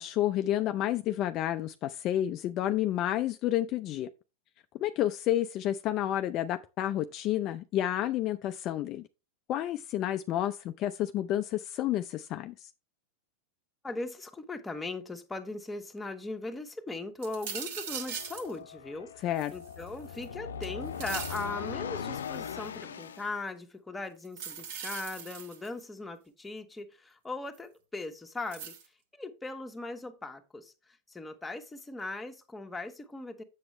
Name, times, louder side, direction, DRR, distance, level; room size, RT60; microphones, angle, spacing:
voice 1, 0.0-4.1 4.8-9.1 9.5-12.7 19.2-19.5, left 12 dB, 45° left, 0.5 m, -30 dB
voice 2, 13.8-28.7 29.1-30.7 31.1-33.4, left 2 dB, 10° left, 1.4 m, -39 dB
sound 1, 17.2-18.5 19.4-20.2 20.6-21.5 22.2-22.7 24.2-25.8 27.5-27.6 28.5-28.8, right 7 dB, 65° right, 2.0 m, -40 dB
sound 2, 17.9-23.3, left 8 dB, 80° left, 0.7 m, -40 dB
7.8 x 7.4 x 3.2 m
hypercardioid pair, 100°, 0 cm